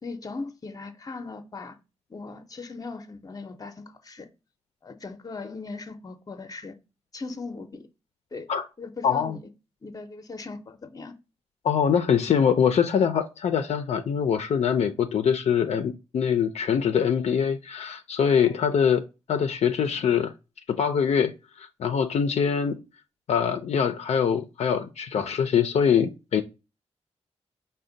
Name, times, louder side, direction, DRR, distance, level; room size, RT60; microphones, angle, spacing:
voice 1, 0.0-1.8 2.1-4.3 4.8-6.7 7.1-7.9 8.3-8.5 8.8-9.4 9.8-11.1 18.4-18.6, left 3 dB, 35° left, 0.6 m, -38 dB
voice 2, 9.0-9.4 11.6-19.0 19.3-20.3 20.7-21.3 21.6-22.8 23.3-26.4, left 7 dB, 70° left, 0.4 m, -23 dB
5.1 x 2.1 x 3.8 m
cardioid pair, 95°, 11 cm